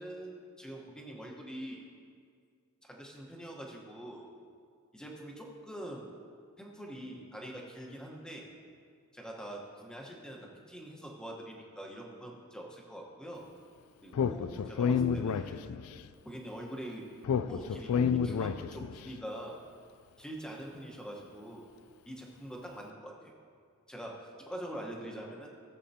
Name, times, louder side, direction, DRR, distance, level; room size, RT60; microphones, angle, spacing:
voice 1, 0.0-1.9 2.8-4.3 4.9-6.1 6.6-8.5 9.1-13.4 14.0-15.7 16.2-17.1 17.5-17.9 18.2-19.6 20.2-21.6 22.1-23.3 23.9-25.5, right 1 dB, 5° left, -1 dB, 1.1 m, -44 dB
Speech, 14.1-16.0 17.2-19.0, left 6 dB, 70° left, 0.3 m, -30 dB
16.0 x 7.5 x 2.8 m, 2.2 s
head